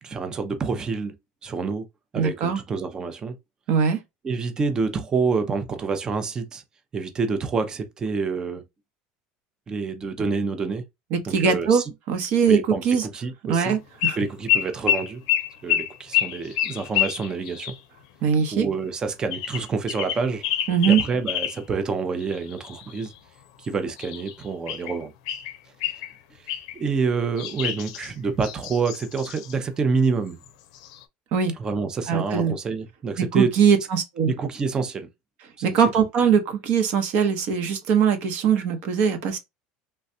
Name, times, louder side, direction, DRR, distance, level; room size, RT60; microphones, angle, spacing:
voice 1, 0.0-1.1 1.4-1.9 2.1-3.3 4.2-6.6 6.9-8.6 9.7-10.8 11.3-11.8 12.5-13.8 14.2-15.2 15.6-17.7 18.5-20.4 20.9-23.1 23.6-25.1 26.7-30.4 31.6-33.5 34.3-35.1 35.6-35.7, right 4 dB, 20° right, 0.5 m, -27 dB
voice 2, 2.1-2.6 3.7-4.0 11.1-11.8 12.1-13.1 13.5-14.2 18.2-18.7 20.7-21.0 31.3-31.5 32.1-32.5 33.2-34.3 35.6-39.4, right 6 dB, 55° right, 0.9 m, -21 dB
sound 1, 14.0-14.2 14.5-17.8 19.3-21.6 22.2-23.2 24.0-25.0 25.3-26.1 26.5-26.8 27.4-29.6 30.4-30.5 30.7-31.0, left 11 dB, 85° left, 0.5 m, -27 dB
3.2 x 2.3 x 2.6 m
cardioid pair, 145°, 3 cm